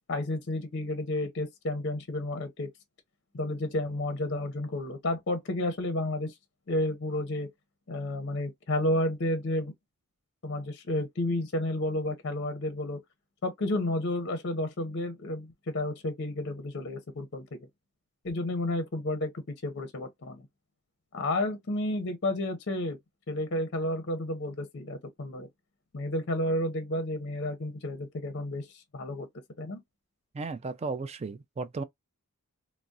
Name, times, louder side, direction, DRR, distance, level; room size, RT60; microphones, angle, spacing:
voice 1, 0.1-2.7 3.3-6.3 6.7-7.5 7.9-9.7 10.4-13.0 13.4-17.7 18.2-20.5 21.1-23.0 23.3-25.5 25.9-29.3 29.6-29.8, left 1 dB, 50° left, 0.6 m, -31 dB
voice 2, 30.3-31.8, right 3 dB, 30° right, 0.3 m, -35 dB
3.4 x 2.0 x 2.6 m
head